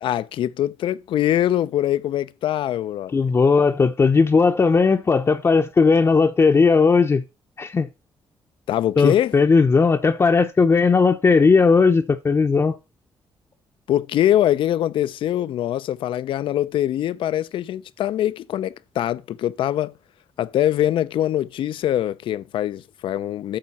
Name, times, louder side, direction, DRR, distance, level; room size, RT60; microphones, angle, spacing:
voice 1, 0.0-3.2 8.7-9.3 13.9-19.9 20.4-23.6, left 12 dB, 80° left, 0.5 m, -23 dB
voice 2, 3.1-7.2 7.6-7.9 9.0-12.8, left 4 dB, 30° left, 0.7 m, -17 dB
8.7 x 6.3 x 4.1 m
cardioid pair, 105°, 9 cm